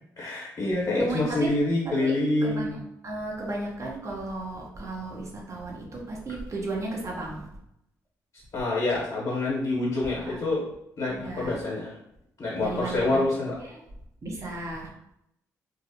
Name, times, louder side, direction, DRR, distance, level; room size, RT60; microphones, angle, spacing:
voice 1, 0.2-2.7 8.3-10.7 11.0-12.0 12.4-13.6, left 2 dB, 50° left, -5 dB, 0.9 m, -27 dB
voice 2, 1.0-1.5 2.0-2.1 2.4-2.8 3.0-7.5 10.1-10.4 11.1-11.6 12.6-13.3 13.6-13.8 14.2-14.9, right 2 dB, 40° right, -2 dB, 0.7 m, -34 dB
2.5 x 2.0 x 2.7 m, 0.79 s
hypercardioid pair, 45°, 8 cm